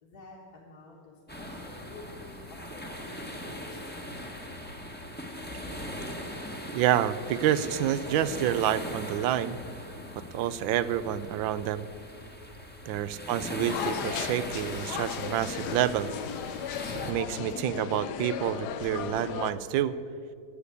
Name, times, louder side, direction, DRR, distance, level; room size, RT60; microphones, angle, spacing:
voice 1, 0.0-4.3 12.9-13.4, left 3 dB, 55° left, -5 dB, 2.0 m, -50 dB
sound 1, 1.3-17.1, equal, 5° left, 0.9 m, -40 dB
voice 2, 6.7-9.6 10.1-11.9 12.9-16.1 17.1-20.0, right 11 dB, 85° right, 15 dB, 1.3 m, -28 dB
sound 2, 13.7-19.5, left 9 dB, 70° left, 1.1 m, -36 dB
11.0 x 8.1 x 8.4 m, 2.4 s
omnidirectional pair, 2.1 m